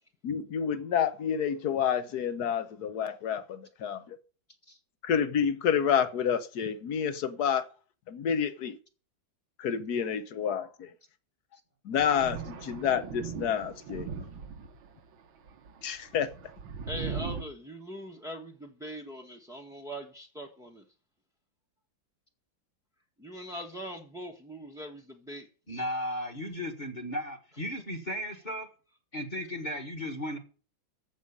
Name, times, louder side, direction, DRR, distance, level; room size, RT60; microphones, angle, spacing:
voice 1, 0.2-4.2 5.0-7.7 8.1-8.8 9.6-10.9 11.8-14.1 15.8-16.3, left 8 dB, 60° left, 1.4 m, -29 dB
Thunder, 12.0-14.9 15.5-17.4, right 6 dB, 90° right, 2.1 m, -39 dB
voice 2, 16.9-20.8 23.2-25.5, equal, ahead, 0.8 m, -41 dB
voice 3, 25.7-28.7 29.1-30.4, equal, 25° left, 1.6 m, -35 dB
14.5 x 5.3 x 8.6 m
omnidirectional pair, 2.1 m